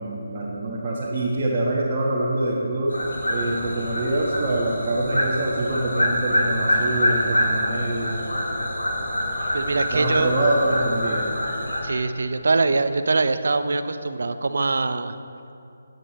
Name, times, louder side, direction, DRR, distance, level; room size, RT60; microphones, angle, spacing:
voice 1, 0.0-2.9 3.3-8.2 9.9-11.3, right 1 dB, 30° right, -6 dB, 1.5 m, -25 dB
sound 1, 2.9-11.8, left 1 dB, 75° left, 3.3 m, -25 dB
voice 2, 9.5-10.3 11.8-15.2, right 3 dB, 60° right, 10 dB, 0.7 m, -23 dB
16.0 x 9.3 x 4.2 m, 2.5 s
figure-of-eight pair, 145°, 0 cm